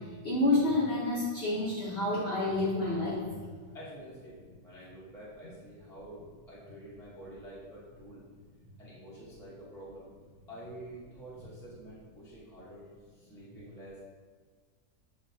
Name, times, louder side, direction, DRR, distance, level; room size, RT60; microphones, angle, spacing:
voice 1, 0.0-3.3, left 2 dB, 55° left, -7 dB, 0.7 m, -29 dB
voice 2, 3.7-8.2 8.8-10.1 10.5-14.0, right 1 dB, 5° left, -7 dB, 0.3 m, -48 dB
6.0 x 2.2 x 2.6 m, 1.5 s
omnidirectional pair, 1.9 m